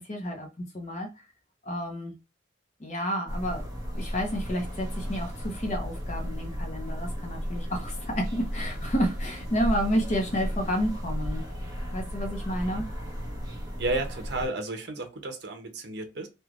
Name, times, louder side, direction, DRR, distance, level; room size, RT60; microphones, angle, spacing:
voice 1, 0.1-0.5 0.7-1.1 1.6-2.1 2.8-3.7 4.0-11.4 11.9-12.8, equal, 35° left, 0.6 m, -30 dB
sound 1, 3.3-14.5, equal, 20° right, 1.5 m, -34 dB
voice 2, 13.8-16.3, right 2 dB, 65° right, 0.7 m, -32 dB
3.1 x 2.2 x 2.4 m
head